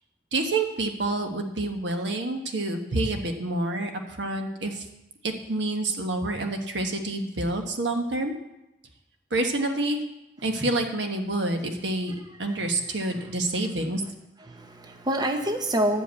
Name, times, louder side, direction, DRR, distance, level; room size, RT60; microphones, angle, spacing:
voice 1, 0.3-3.9 4.2-4.9 5.2-8.3 9.3-10.0 10.4-14.0, right 2 dB, 80° right, 4 dB, 1.3 m, -28 dB
voice 2, 12.4-13.3 14.4-16.0, right 1 dB, 25° right, 5 dB, 0.8 m, -28 dB
11.0 x 5.3 x 8.3 m, 0.92 s
head